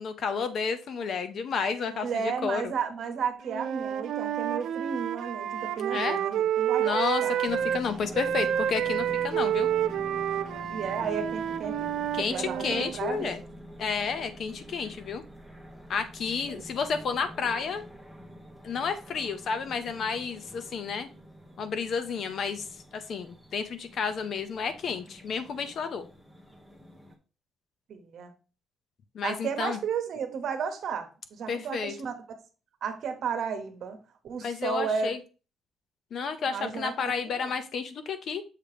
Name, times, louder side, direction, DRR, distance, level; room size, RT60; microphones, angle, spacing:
voice 1, 0.0-2.7 5.9-6.2 6.8-9.7 12.1-13.4 13.8-15.2 15.9-17.8 18.6-21.1 21.6-22.7 22.9-26.1 29.1-29.8 31.5-31.9 34.4-35.2 36.1-38.4, left 5 dB, 50° left, 10 dB, 0.7 m, -31 dB
voice 2, 1.9-7.5 8.4-8.6 10.7-11.9 12.2-13.5 16.5-16.6 27.9-28.3 29.2-32.1 32.8-34.0 34.2-35.1 36.5-37.5, right 6 dB, 55° right, 7 dB, 1.0 m, -33 dB
Wind instrument woodwind instrument, 3.4-7.8 8.1-13.0, right 10 dB, 70° right, 0.5 m, -29 dB
sound 1, 7.5-27.2, equal, 5° left, 0.9 m, -46 dB
6.6 x 2.9 x 4.9 m, 0.34 s
cardioid pair, 165°, 0 cm